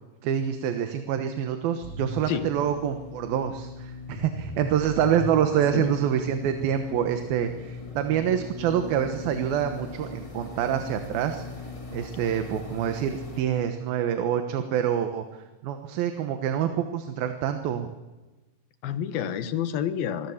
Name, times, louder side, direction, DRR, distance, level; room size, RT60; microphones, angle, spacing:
voice 1, 0.2-11.4 11.9-17.9, right 9 dB, 85° right, 7 dB, 3.1 m, -26 dB
sound 1, 1.8-13.4, left 2 dB, 15° left, 1.4 m, -39 dB
voice 2, 18.8-20.3, left 9 dB, 85° left, 10 dB, 3.2 m, -29 dB
26.5 x 20.5 x 7.3 m, 1.2 s
omnidirectional pair, 4.1 m